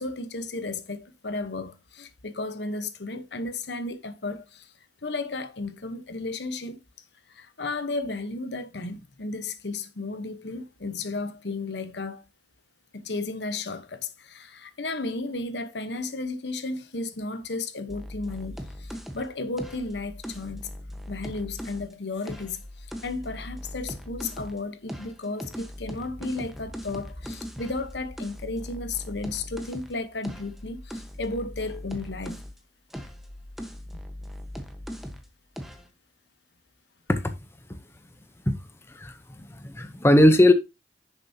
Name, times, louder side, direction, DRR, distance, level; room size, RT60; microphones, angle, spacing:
voice 1, 0.0-4.7 5.0-6.8 7.3-12.3 12.9-20.7 21.1-32.4, left 3 dB, 70° left, 1.0 m, -34 dB
sound 1, 17.9-21.9 22.2-24.6 24.9-32.6 32.9-35.3 35.6-35.9, equal, ahead, 1.1 m, -39 dB
voice 2, 38.9-40.5, left 1 dB, 15° left, 0.7 m, -19 dB
10.0 x 6.8 x 2.8 m
head